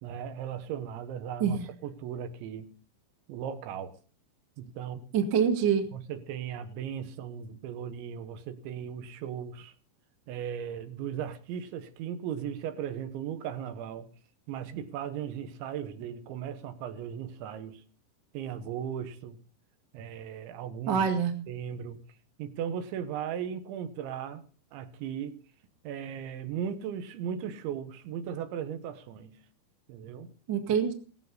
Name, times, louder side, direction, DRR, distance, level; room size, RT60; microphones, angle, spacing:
voice 1, 0.0-2.7 3.3-4.0 4.6-5.1 5.9-9.7 10.3-14.1 14.5-17.8 18.3-19.4 19.9-21.1 21.5-22.0 22.4-24.4 24.7-25.4 25.8-29.4 29.9-30.3, right 8 dB, 75° right, 3.5 m, -37 dB
voice 2, 5.1-5.8 20.9-21.3 30.5-30.9, right 7 dB, 55° right, 1.2 m, -25 dB
17.5 x 14.0 x 4.1 m
omnidirectional pair, 5.5 m